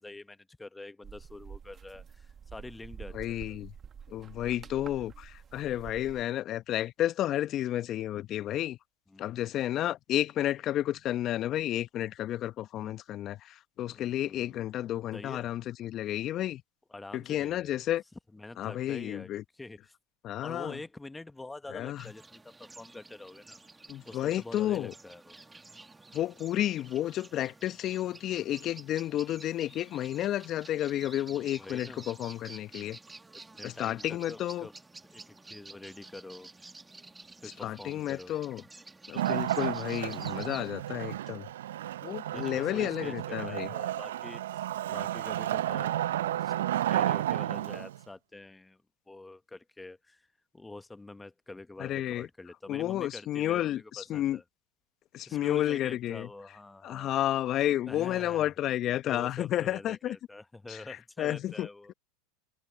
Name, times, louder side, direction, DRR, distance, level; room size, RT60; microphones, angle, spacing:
voice 1, 0.0-3.6 9.1-9.4 12.7-13.0 13.9-14.6 15.1-15.5 16.9-17.7 18.3-19.9 20.4-23.6 24.0-25.4 31.3-32.1 33.3-34.7 35.1-36.5 37.4-38.3 42.3-44.6 44.9-46.5 46.9-48.8 49.1-50.3 50.5-54.4 55.3-57.4 57.8-58.5 59.0-61.9, left 2 dB, 10° left, 1.1 m, -46 dB
sound 1, 1.0-6.2, right 7 dB, 30° right, 1.9 m, -48 dB
voice 2, 3.1-3.7 4.1-8.8 9.2-16.6 17.1-18.0 18.6-19.4 20.2-20.8 21.7-22.0 23.9-24.9 26.1-33.0 33.6-34.7 37.6-38.6 39.1-41.5 42.0-43.7 51.8-52.3 52.7-54.4 55.1-56.3 56.8-60.2 60.7-60.8 61.2-61.7, left 13 dB, 45° left, 1.1 m, -31 dB
sound 2, 21.9-40.7, right 3 dB, 10° right, 2.2 m, -51 dB
Wood, 39.2-48.0, right 13 dB, 75° right, 0.7 m, -32 dB
hypercardioid pair, 90°, 0 cm